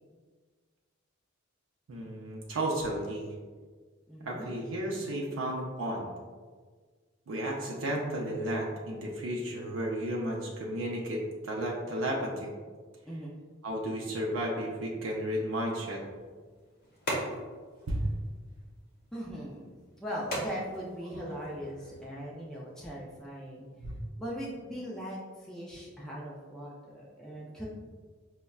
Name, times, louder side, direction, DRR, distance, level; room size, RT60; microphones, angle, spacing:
voice 1, 1.9-3.3 4.2-6.1 7.3-12.5 13.6-16.0 17.9-18.1 23.8-24.0, right 1 dB, 80° right, -2 dB, 0.5 m, -33 dB
voice 2, 4.1-4.5 13.1-13.4 19.1-19.7 20.0-23.7 24.2-27.7, equal, 5° left, -5 dB, 0.3 m, -40 dB
sound 1, 16.0-22.1, equal, 45° left, 0.9 m, -41 dB
5.3 x 2.1 x 2.3 m, 1.5 s
head